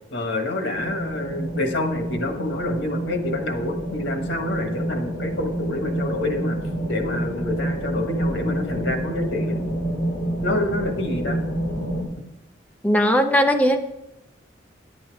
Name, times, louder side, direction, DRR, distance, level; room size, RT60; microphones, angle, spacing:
voice 1, 0.1-6.6 6.9-9.6 10.4-11.4, left 2 dB, 85° left, 5 dB, 1.5 m, -27 dB
sound 1, 0.7-12.0, right 1 dB, 55° left, 2.5 m, -28 dB
voice 2, 12.8-13.8, equal, 10° left, 5 dB, 0.5 m, -18 dB
10.0 x 8.5 x 4.7 m, 0.89 s
head